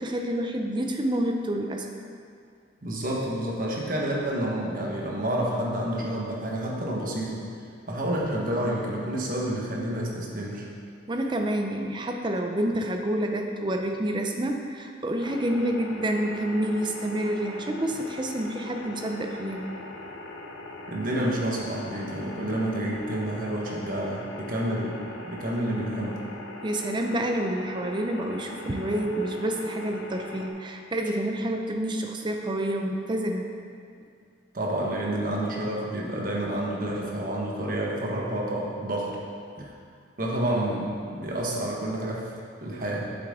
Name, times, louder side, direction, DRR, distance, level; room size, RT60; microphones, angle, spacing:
voice 1, 0.0-1.9 11.1-19.6 26.6-33.5 39.6-39.7, right 1 dB, 25° right, 3 dB, 0.5 m, -28 dB
voice 2, 2.8-7.5 7.9-10.7 20.9-26.2 34.5-39.2 40.2-42.3 42.6-43.0, right 1 dB, 50° right, -3 dB, 1.3 m, -29 dB
sound 1, 15.2-30.5, left 2 dB, 85° left, 0.8 m, -41 dB
8.1 x 7.7 x 3.7 m, 2.3 s
head